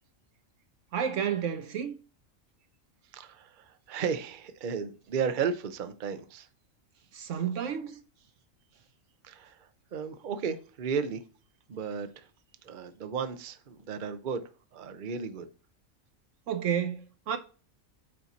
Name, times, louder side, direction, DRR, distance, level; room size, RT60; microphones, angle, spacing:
voice 1, 0.9-1.9 7.1-8.0 16.5-17.4, right 8 dB, 70° right, 1.0 m, -31 dB
voice 2, 3.1-6.5 9.2-9.5 9.9-11.2 11.7-12.1 12.6-14.4 14.7-15.5, right 6 dB, 45° right, 0.8 m, -34 dB
8.4 x 4.4 x 4.1 m
omnidirectional pair, 1.4 m